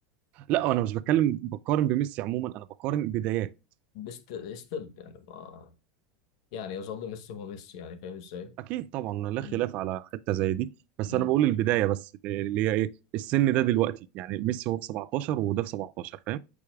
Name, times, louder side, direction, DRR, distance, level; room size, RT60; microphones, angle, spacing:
voice 1, 0.5-3.5 8.7-10.7 11.0-16.4, right 14 dB, 50° right, 0.3 m, -27 dB
voice 2, 3.9-5.7 6.5-8.5 9.4-9.6 11.1-11.3, left 7 dB, 65° left, 1.0 m, -40 dB
8.4 x 4.8 x 2.3 m
supercardioid pair, 130°, 3 cm